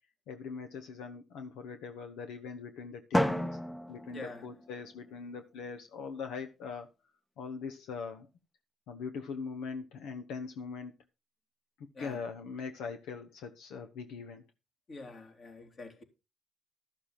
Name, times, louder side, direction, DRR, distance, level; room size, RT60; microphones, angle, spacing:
voice 1, 0.3-3.6 3.9-6.9 7.4-8.3 8.9-10.9 12.0-14.4, left 5 dB, 85° left, 1.1 m, -41 dB
Drum, 3.1-5.1, equal, 10° left, 0.8 m, -32 dB
voice 2, 4.1-4.5 11.9-12.2 14.9-16.0, left 3 dB, 45° left, 3.2 m, -45 dB
13.5 x 6.6 x 5.8 m
cardioid pair, 90°, 0 cm